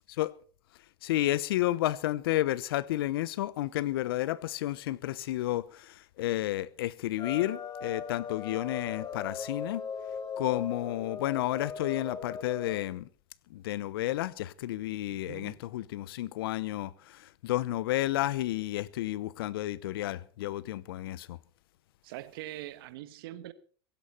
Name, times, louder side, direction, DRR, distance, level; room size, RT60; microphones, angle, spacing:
voice 1, 1.0-9.8 10.4-13.1 13.5-21.4, left 15 dB, 80° left, 0.8 m, -31 dB
sound 1, 7.2-12.8, left 6 dB, 35° left, 3.5 m, -39 dB
voice 2, 15.1-15.6 22.0-23.5, right 15 dB, 75° right, 1.3 m, -43 dB
16.5 x 16.0 x 4.3 m
hypercardioid pair, 90°, 12 cm